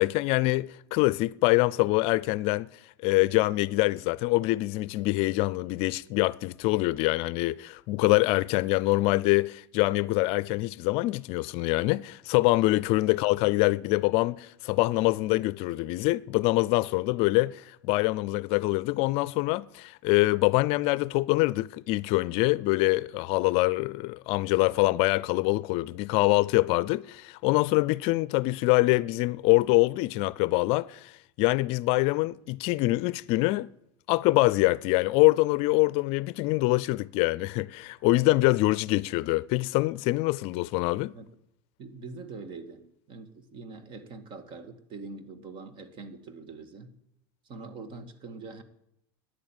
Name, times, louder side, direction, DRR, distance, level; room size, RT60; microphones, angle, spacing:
voice 1, 0.0-2.7 3.0-31.1 31.4-33.7 34.1-41.1, left 21 dB, 55° left, 0.5 m, -25 dB
voice 2, 41.8-46.9 47.4-48.6, right 3 dB, 45° right, 2.1 m, -43 dB
14.0 x 10.0 x 9.2 m
supercardioid pair, 130°, 12 cm